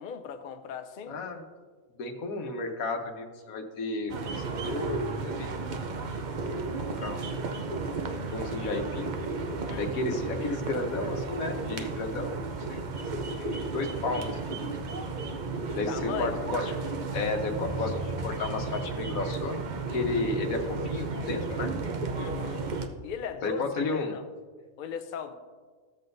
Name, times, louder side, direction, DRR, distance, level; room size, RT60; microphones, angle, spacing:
voice 1, 0.0-1.2 9.7-9.9 15.7-16.4 22.1-22.7 23.0-23.6 24.1-24.2 24.8-25.3, left 7 dB, 55° left, 7 dB, 0.6 m, -38 dB
voice 2, 1.1-1.4 1.9-5.7 6.4-6.6 7.0-7.3 8.1-9.1 9.8-12.8 13.3-14.7 15.7-21.7 23.4-24.2, left 3 dB, 80° left, 4 dB, 1.4 m, -33 dB
sound 1, 4.1-22.9, right 3 dB, 50° right, 0.6 m, -33 dB
13.5 x 7.7 x 2.6 m, 1.5 s
omnidirectional pair, 1.4 m